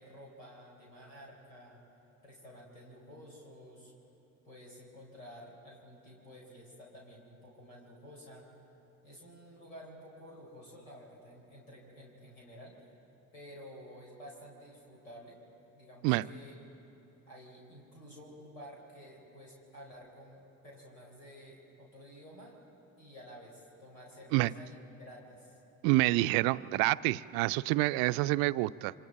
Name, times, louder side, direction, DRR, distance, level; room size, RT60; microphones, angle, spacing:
voice 1, 0.0-1.8 2.2-3.9 4.4-8.5 9.0-12.9 13.3-15.4 15.7-16.6 17.3-22.6 23.0-25.6, equal, 80° left, -3 dB, 4.1 m, -52 dB
voice 2, 25.8-28.9, right 20 dB, 60° right, 16 dB, 0.5 m, -27 dB
27.5 x 25.5 x 4.0 m, 3.0 s
figure-of-eight pair, 50°, 40 cm